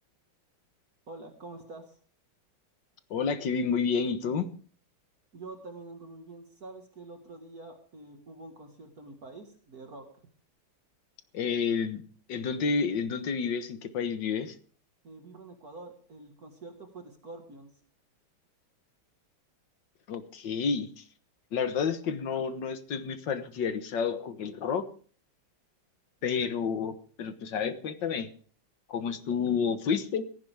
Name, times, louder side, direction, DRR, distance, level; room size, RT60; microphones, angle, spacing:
voice 1, 1.1-2.0 5.3-10.3 15.0-17.7, right 2 dB, 50° right, 4 dB, 2.1 m, -46 dB
voice 2, 3.1-4.5 11.3-12.0 12.3-14.5 20.1-21.0 21.5-24.9 26.2-28.3 28.9-30.2, left 6 dB, 65° left, 10 dB, 1.8 m, -30 dB
17.5 x 15.0 x 3.5 m, 0.43 s
omnidirectional pair, 2.2 m